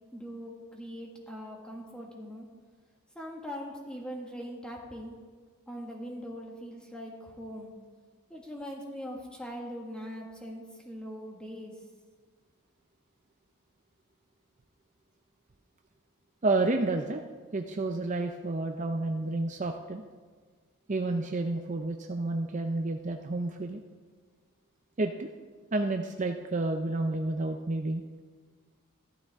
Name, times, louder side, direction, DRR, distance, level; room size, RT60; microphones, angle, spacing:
voice 1, 0.1-2.5 3.1-5.1 5.7-7.7 8.3-11.7, equal, 5° left, -1 dB, 1.7 m, -41 dB
voice 2, 16.4-17.2 17.5-20.1 20.9-23.8 25.0-25.3 25.7-28.0, right 2 dB, 35° right, 5 dB, 0.5 m, -30 dB
15.0 x 12.5 x 3.6 m, 1.5 s
head